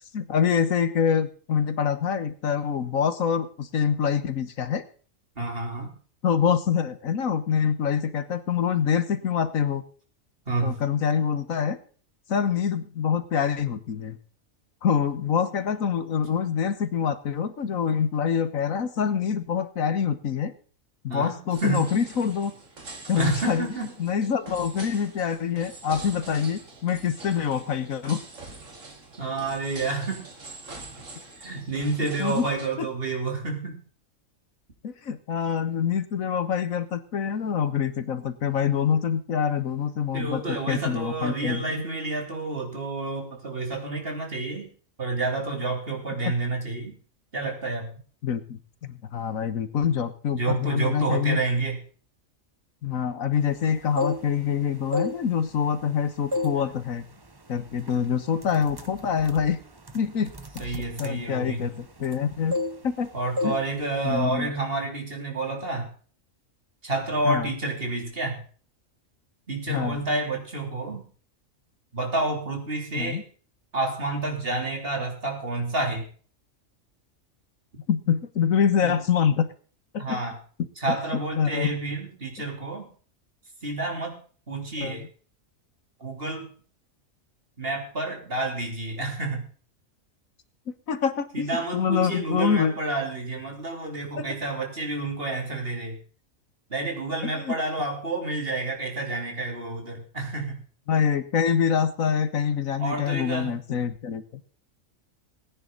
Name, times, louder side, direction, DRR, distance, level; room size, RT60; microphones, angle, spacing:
voice 1, 0.1-4.9 6.2-9.8 10.6-11.8 12.3-14.2 14.8-20.5 21.0-22.5 23.1-23.7 24.0-28.2 32.2-32.5 34.8-41.7 48.2-51.4 52.8-57.1 57.5-59.6 59.9-60.3 60.6-62.5 63.0-63.1 63.4-63.6 64.0-64.5 67.2-67.6 69.7-70.0 73.0-73.2 77.9-79.5 79.9-80.2 80.9-81.0 81.4-81.7 84.8-85.1 90.7-92.8 94.2-94.3 97.2-97.6 100.9-104.2, left 7 dB, 80° left, 11 dB, 1.6 m, -25 dB
voice 2, 5.4-5.9 10.5-10.8 21.1-21.9 23.2-23.9 29.2-30.3 31.4-33.8 40.1-44.7 45.0-47.0 47.3-47.9 50.3-51.8 60.6-61.7 63.1-65.9 66.8-68.4 69.5-71.0 71.9-73.2 73.7-76.1 78.8-79.0 80.0-80.4 80.8-82.9 83.6-84.2 84.5-85.0 86.0-86.5 87.6-89.5 91.3-96.0 96.7-100.6 102.8-103.6, right 3 dB, 45° right, 1 dB, 3.8 m, -29 dB
sound 1, 21.5-32.7, right 3 dB, 65° right, 2.8 m, -43 dB
sound 2, 53.7-54.5 54.9-55.9 56.3-56.7 57.0-57.3 57.9-58.0 58.4-62.2 62.5-63.1 63.4-63.7 63.9-64.2, left 2 dB, 20° right, 0.9 m, -31 dB
19.0 x 9.9 x 4.0 m, 0.42 s
omnidirectional pair, 1.4 m